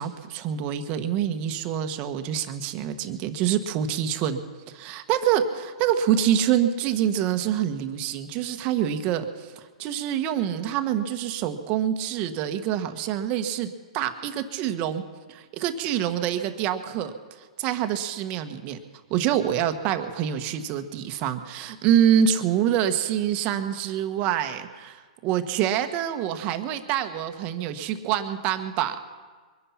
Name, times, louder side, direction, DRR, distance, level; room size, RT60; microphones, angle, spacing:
voice 1, 0.0-4.4 4.7-15.0 15.3-18.8 19.1-29.0, right 9 dB, 35° right, 8 dB, 1.2 m, -26 dB
23.0 x 10.0 x 5.8 m, 1.5 s
hypercardioid pair, 135°, 4 cm